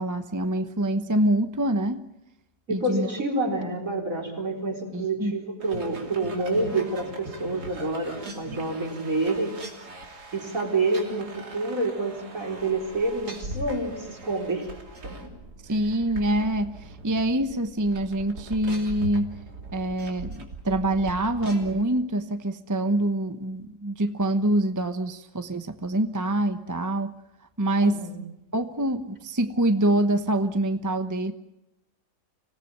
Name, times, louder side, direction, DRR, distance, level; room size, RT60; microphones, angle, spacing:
voice 1, 0.0-2.1 2.7-3.1 3.6-3.7 4.9-5.4 15.6-19.3 19.7-27.1 27.6-28.0 28.5-31.3, right 1 dB, 15° right, 8 dB, 0.9 m, -25 dB
voice 2, 2.7-9.5 10.3-14.7 15.0-15.3 27.8-28.2, right 2 dB, 55° right, 1 dB, 4.7 m, -28 dB
sound 1, 5.6-21.8, right 1 dB, 80° right, 3.5 m, -40 dB
26.0 x 18.0 x 8.7 m, 0.88 s
omnidirectional pair, 1.7 m